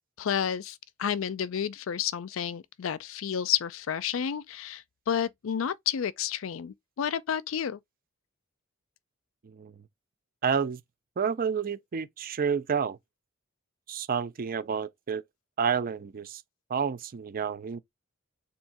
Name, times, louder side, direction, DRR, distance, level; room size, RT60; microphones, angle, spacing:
voice 1, 0.2-7.8, left 8 dB, 70° left, 0.4 m, -31 dB
voice 2, 9.4-9.7 10.4-10.8 11.2-13.0 13.9-15.2 15.6-16.4 16.7-17.8, right 6 dB, 45° right, 0.4 m, -29 dB
3.6 x 2.8 x 4.1 m
head